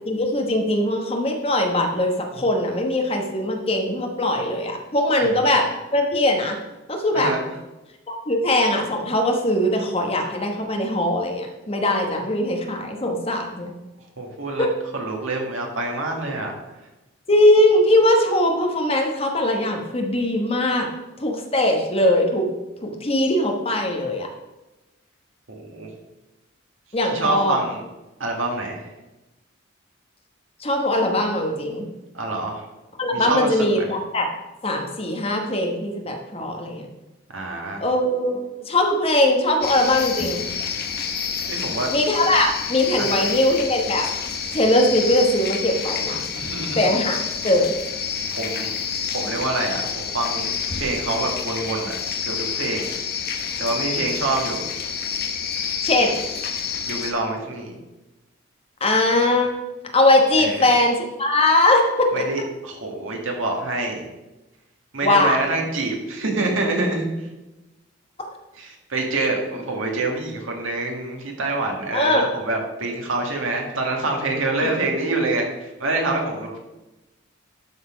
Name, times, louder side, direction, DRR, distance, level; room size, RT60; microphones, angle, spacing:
voice 1, 0.1-5.7 5.9-6.6 6.9-7.3 8.3-13.7 14.6-14.7 17.3-20.9 21.2-22.5 22.8-24.3 26.9-27.6 30.6-31.8 33.0-34.3 34.6-36.9 37.8-40.4 41.9-44.1 44.5-46.2 46.7-47.2 47.4-47.7 55.8-56.1 58.8-59.5 59.9-62.2 65.0-65.4 71.9-72.3, left 1 dB, 30° left, 3 dB, 1.2 m, -20 dB
voice 2, 14.2-14.7 14.9-16.5 25.5-25.9 27.0-27.8 28.2-28.8 32.1-32.6 33.1-33.7 37.3-37.8 41.5-41.9 43.0-43.3 46.4-46.9 48.3-48.7 49.1-52.0 52.3-52.9 53.6-54.6 56.8-57.7 60.4-60.7 62.1-64.0 64.9-67.1 68.6-75.5 75.8-76.6, right 2 dB, 90° right, 1 dB, 2.0 m, -26 dB
sound 1, 39.6-57.1, left 6 dB, 50° left, 0.9 m, -28 dB
12.0 x 4.3 x 5.1 m, 1.0 s
head